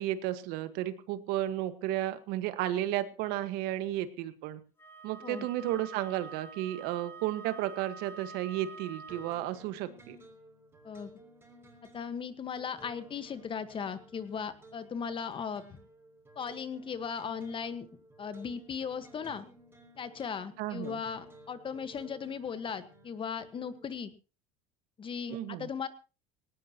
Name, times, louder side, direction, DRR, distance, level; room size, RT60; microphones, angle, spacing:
voice 1, 0.0-4.6 5.0-10.2 20.6-21.0 25.3-25.7, right 13 dB, 65° right, 11 dB, 1.6 m, -33 dB
Wind instrument woodwind instrument, 4.8-9.5, right 5 dB, 15° left, 3.5 m, -47 dB
sound 1, 9.1-23.9, right 1 dB, 15° right, 5.8 m, -56 dB
voice 2, 11.9-15.6 16.3-17.9 18.2-19.4 20.0-24.1 25.0-25.9, left 6 dB, 30° left, 12 dB, 1.5 m, -37 dB
19.0 x 18.5 x 3.0 m, 0.33 s
supercardioid pair, 115°, 17 cm